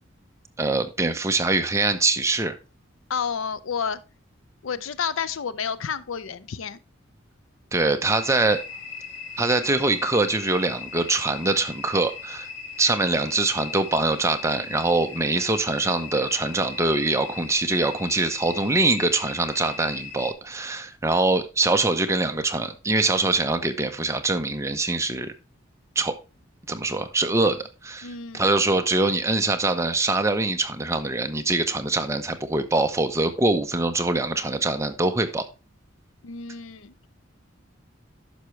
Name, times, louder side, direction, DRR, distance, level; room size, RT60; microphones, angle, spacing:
voice 1, 0.6-2.5 7.7-8.6 9.4-12.5 12.8-25.3 26.0-26.1 26.7-28.1 28.3-35.4, right 2 dB, 15° right, 0.7 m, -23 dB
voice 2, 3.1-4.0 4.6-6.8 28.0-28.5 36.2-36.9, left 6 dB, 80° left, 0.5 m, -30 dB
sound 1, 8.1-20.3, left 5 dB, 65° left, 1.6 m, -38 dB
11.5 x 5.8 x 3.2 m
head